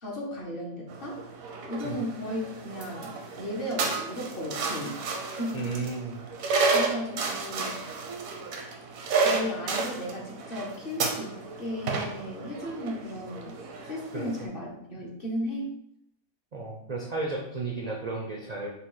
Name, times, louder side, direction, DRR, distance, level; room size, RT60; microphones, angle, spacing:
voice 1, 0.0-1.2 1.7-5.0 5.4-5.6 6.7-7.8 9.2-13.6 13.9-15.7, left 1 dB, 45° left, -3 dB, 1.1 m, -35 dB
sound 1, 0.9-14.4, right 4 dB, 80° right, 1.1 m, -32 dB
voice 2, 5.5-6.2 14.1-14.3 16.5-18.7, right 3 dB, 45° right, -1 dB, 0.5 m, -33 dB
5.8 x 2.3 x 3.8 m, 0.77 s
omnidirectional pair, 1.4 m